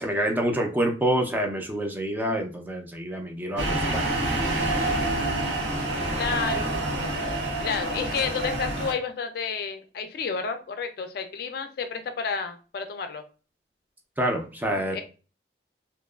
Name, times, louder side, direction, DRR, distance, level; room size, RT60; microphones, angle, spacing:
voice 1, 0.0-4.4 14.2-15.0, right 1 dB, 10° right, 2 dB, 0.4 m, -27 dB
sound 1, 3.6-8.9, right 2 dB, 85° right, 0.8 m, -27 dB
voice 2, 4.4-4.8 6.1-6.8 7.6-13.2 14.9-15.0, left 5 dB, 60° left, 7 dB, 0.4 m, -31 dB
2.8 x 2.3 x 2.2 m, 0.36 s
head